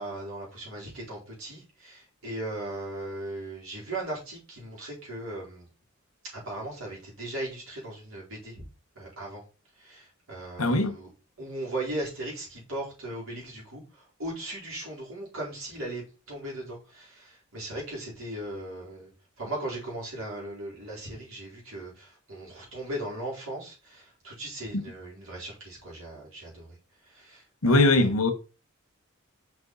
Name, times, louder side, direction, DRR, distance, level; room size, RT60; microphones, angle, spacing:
voice 1, 0.0-5.7 6.2-8.6 8.9-9.4 9.8-11.1 11.4-19.1 19.4-26.8 27.0-28.1, right 1 dB, 70° right, 4.3 m, -38 dB
voice 2, 10.6-11.0 24.7-24.8 27.6-28.3, left 2 dB, 85° left, 1.2 m, -21 dB
6.3 x 4.9 x 4.1 m
head